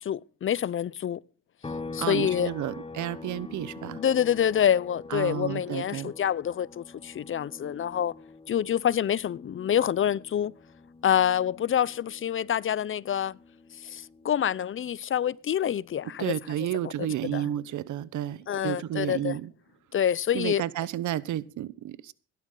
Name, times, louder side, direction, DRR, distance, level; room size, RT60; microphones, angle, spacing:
voice 1, 0.0-1.2 1.9-2.5 4.0-8.1 8.5-10.5 11.0-13.4 13.8-16.3 16.8-16.9 17.3-17.5 18.5-19.4 19.9-20.6, left 9 dB, 45° left, 0.6 m, -27 dB
sound 1, 1.6-15.2 15.5-17.7, left 3 dB, 20° left, 0.9 m, -45 dB
voice 2, 2.0-4.0 5.1-6.1 16.2-19.5 20.3-22.1, right 12 dB, 75° right, 1.0 m, -31 dB
16.5 x 12.0 x 3.8 m
cardioid pair, 90°, 30 cm